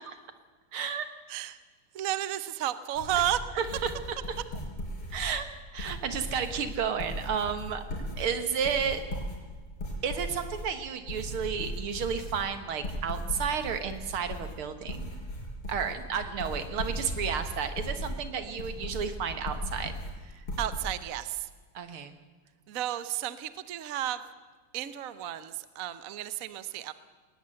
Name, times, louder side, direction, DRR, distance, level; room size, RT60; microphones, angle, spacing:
voice 1, 0.7-1.1 3.5-4.2 5.1-7.8 8.2-9.0 10.0-15.1 15.7-19.9 20.3-20.4 21.7-22.1, right 7 dB, 80° right, 10 dB, 2.4 m, -32 dB
voice 2, 1.9-3.4 20.6-21.5 22.7-24.2 24.7-26.9, right 12 dB, 55° right, 13 dB, 1.0 m, -32 dB
sound 1, 2.9-20.9, left 1 dB, 75° left, 5.4 m, -38 dB
20.0 x 19.0 x 7.8 m, 1.4 s
omnidirectional pair, 2.4 m